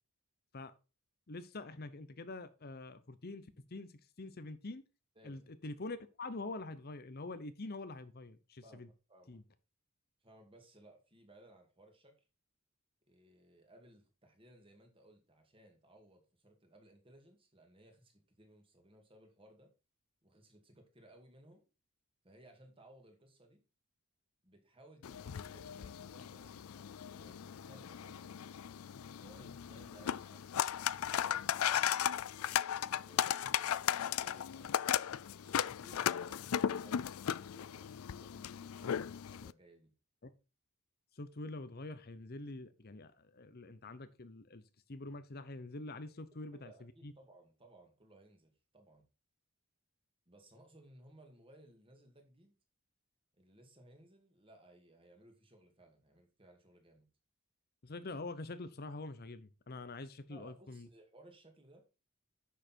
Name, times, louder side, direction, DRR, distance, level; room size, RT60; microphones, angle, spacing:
voice 1, 1.3-4.8 5.2-8.9 9.3-9.4 40.2-40.3 41.1-44.6 44.9-47.1 57.8-60.9, left 2 dB, 45° left, 12 dB, 0.8 m, -45 dB
voice 2, 9.1-9.4 10.2-12.2 13.1-19.7 20.2-21.6 22.2-23.6 24.4-28.5 29.1-30.5 31.0-32.3 32.8-34.9 35.4-39.9 46.3-49.0 50.3-52.5 53.4-57.1 60.3-61.8, right 1 dB, 25° right, 4 dB, 2.4 m, -61 dB
sound 1, 25.0-39.5, left 9 dB, 80° left, 0.4 m, -36 dB
10.0 x 6.7 x 4.6 m, 0.31 s
head